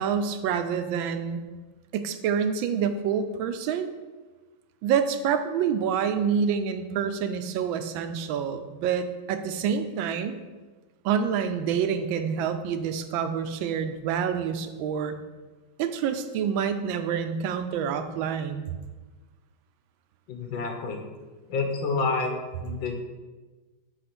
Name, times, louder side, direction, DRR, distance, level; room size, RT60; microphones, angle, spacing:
voice 1, 0.0-1.4 1.9-3.9 4.8-10.4 11.0-15.2 15.8-18.7, right 7 dB, 80° right, 9 dB, 1.3 m, -27 dB
voice 2, 20.3-21.1 21.5-22.3 22.6-23.0, left 4 dB, 75° left, 3 dB, 1.7 m, -28 dB
6.2 x 4.0 x 5.9 m, 1.3 s
omnidirectional pair, 2.1 m